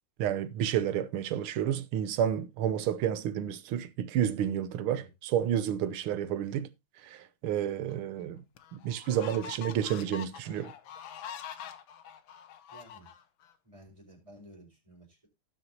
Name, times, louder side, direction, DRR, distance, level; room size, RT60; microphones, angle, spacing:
voice 1, 0.2-6.7 7.0-8.4 8.7-10.7, right 10 dB, 90° right, 1.6 m, -30 dB
sound 1, 7.9-8.0 8.6-13.5, left 8 dB, 75° left, 1.7 m, -45 dB
voice 2, 12.7-13.1 13.6-15.3, equal, 15° right, 4.7 m, -54 dB
18.5 x 6.4 x 2.8 m
omnidirectional pair, 2.3 m